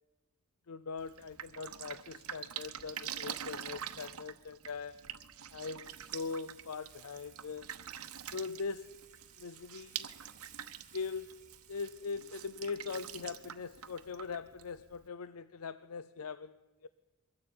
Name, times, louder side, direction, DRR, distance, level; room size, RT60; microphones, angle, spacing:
voice 1, 0.7-5.1 5.5-7.7 8.3-9.0 9.4-10.2 10.9-16.9, left 5 dB, 90° left, 0.6 m, -41 dB
Drip, 1.0-15.1, right 9 dB, 85° right, 1.0 m, -46 dB
Water / Water tap faucet / Sink (filling or washing), 5.8-12.6, right 9 dB, 35° right, 1.4 m, -61 dB
22.5 x 14.5 x 8.6 m
head